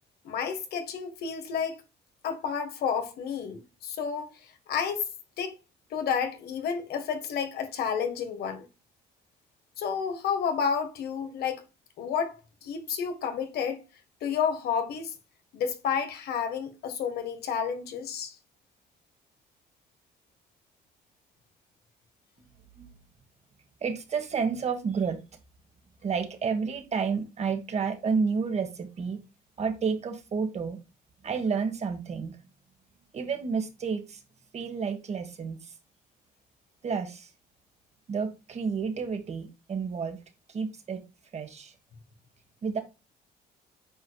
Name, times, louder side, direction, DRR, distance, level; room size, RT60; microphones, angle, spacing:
voice 1, 0.2-1.8 2.2-5.1 5.4-5.6 5.9-8.7 9.8-11.6 12.0-13.8 14.2-15.1 15.5-18.4, left 7 dB, 70° left, 1.6 m, -31 dB
voice 2, 23.8-25.2 26.0-29.2 29.6-30.8 31.2-32.4 33.1-34.2 34.5-35.7 36.8-37.3 38.1-40.2 40.5-41.0 41.3-41.7 42.6-42.8, right 5 dB, 40° right, 1.6 m, -30 dB
8.6 x 4.8 x 2.4 m
cardioid pair, 110°, 17 cm